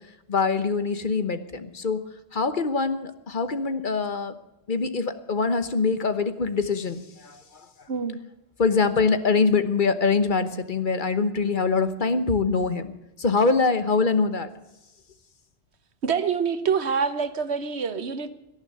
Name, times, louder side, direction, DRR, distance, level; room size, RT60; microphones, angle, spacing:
voice 1, 0.3-2.0 2.3-4.3 4.7-7.4 8.6-12.9 13.2-14.5, left 4 dB, 50° left, 11 dB, 1.2 m, -24 dB
voice 2, 7.9-8.2 16.0-18.3, right 6 dB, 75° right, 12 dB, 1.4 m, -26 dB
18.5 x 11.0 x 6.7 m, 0.94 s
omnidirectional pair, 1.1 m